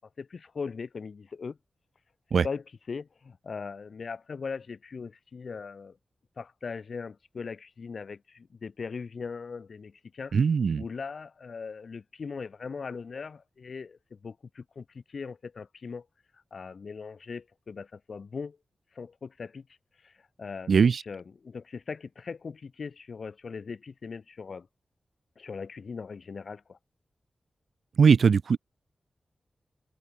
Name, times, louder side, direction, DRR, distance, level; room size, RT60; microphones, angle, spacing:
voice 1, 0.2-1.6 2.4-6.0 6.4-10.3 10.8-16.1 16.3-18.6 18.9-19.7 20.0-20.7 21.1-24.7 25.4-26.8, left 5 dB, 55° left, 1.2 m, -39 dB
voice 2, 10.3-10.8 20.7-21.0 28.0-28.6, right 6 dB, 70° right, 0.5 m, -20 dB
wide cardioid pair, 170°, 0 cm